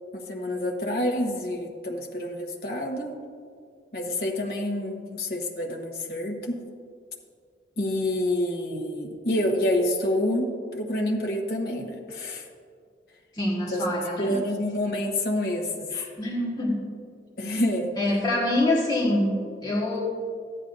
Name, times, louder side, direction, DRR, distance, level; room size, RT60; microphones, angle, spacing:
voice 1, 0.1-3.1 3.9-6.6 7.8-12.5 13.7-15.9 17.4-17.9, left 1 dB, 55° left, 1 dB, 1.2 m, -28 dB
voice 2, 13.3-14.3 15.9-16.8 18.0-20.0, left 1 dB, 25° left, -5 dB, 1.6 m, -25 dB
13.0 x 9.9 x 2.7 m, 2.1 s
head